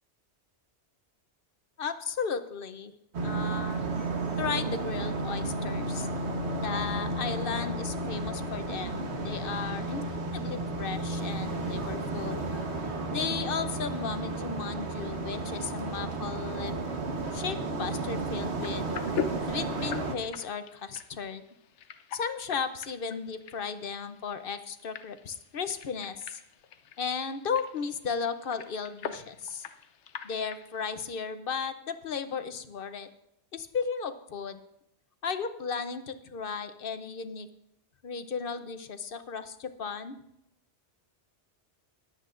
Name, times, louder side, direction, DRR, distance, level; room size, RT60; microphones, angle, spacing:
voice 1, 1.8-2.9 3.2-3.9 4.4-6.1 6.6-12.4 13.1-16.7 17.3-18.9 19.5-21.4 22.1-26.4 27.0-29.6 30.2-33.1 33.5-34.6 35.2-37.5 38.0-40.2, left 6 dB, 55° left, 10 dB, 0.8 m, -35 dB
sound 1, 3.1-20.2, right 2 dB, 70° right, 1.5 m, -33 dB
sound 2, 18.4-30.9, left 7 dB, 80° left, 1.0 m, -43 dB
22.0 x 8.2 x 2.5 m, 0.80 s
omnidirectional pair, 1.2 m